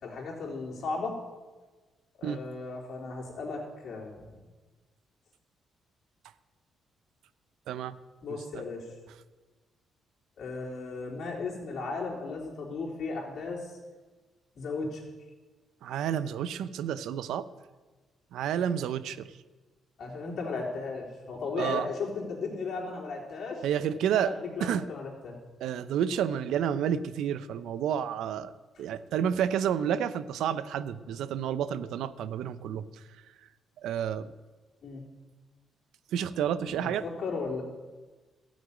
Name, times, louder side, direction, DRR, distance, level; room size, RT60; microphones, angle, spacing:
voice 1, 0.0-1.2 2.2-4.3 8.2-8.9 10.4-13.8 14.6-15.0 20.0-23.6 24.1-25.4 34.8-35.0 36.6-37.6, left 4 dB, 60° left, -4 dB, 3.8 m, -36 dB
voice 2, 15.8-17.5 18.3-19.2 21.6-21.9 23.6-24.3 24.6-24.9 25.6-28.5 28.8-32.9 33.8-34.3 36.1-37.0, right 9 dB, 80° right, 15 dB, 0.6 m, -30 dB
13.0 x 6.3 x 8.9 m, 1.3 s
cardioid pair, 90°, 0 cm